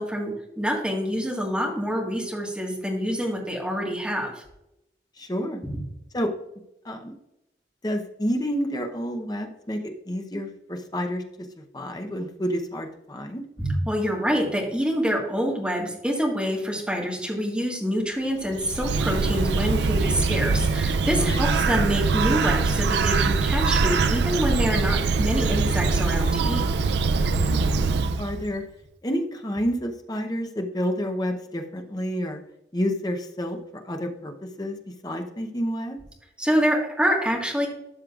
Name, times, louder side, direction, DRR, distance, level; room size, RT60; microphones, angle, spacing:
voice 1, 0.0-4.4 5.6-5.8 13.6-26.7 36.4-37.7, equal, 5° right, -1 dB, 1.6 m, -26 dB
voice 2, 5.2-5.6 6.1-6.3 6.8-7.1 7.8-11.2 11.7-13.4 21.1-21.4 27.2-27.6 28.2-28.6 29.0-32.4 32.7-33.6 33.8-34.3 34.6-34.8 35.0-36.0, equal, 20° left, 4 dB, 0.8 m, -29 dB
Bird, 18.4-28.5, right 4 dB, 70° right, 0.4 m, -23 dB
12.5 x 6.5 x 2.4 m, 0.86 s
head